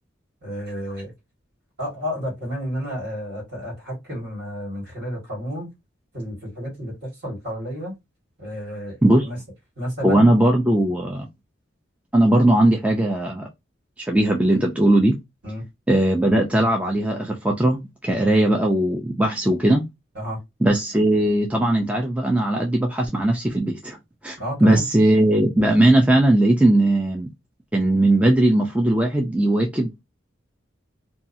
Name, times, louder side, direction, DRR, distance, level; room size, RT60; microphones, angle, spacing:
voice 1, 0.4-1.1 1.8-5.7 6.1-7.9 8.4-9.0 9.2-9.4 9.8-10.3 15.4-15.6 18.2-18.4 20.1-20.4 24.4-24.8, equal, 55° right, 1.8 m, -31 dB
voice 2, 10.0-11.3 12.1-13.5 14.0-15.1 15.9-19.8 20.6-24.0 24.2-27.3 27.7-30.0, right 1 dB, 5° right, 0.4 m, -19 dB
2.8 x 2.3 x 2.6 m
head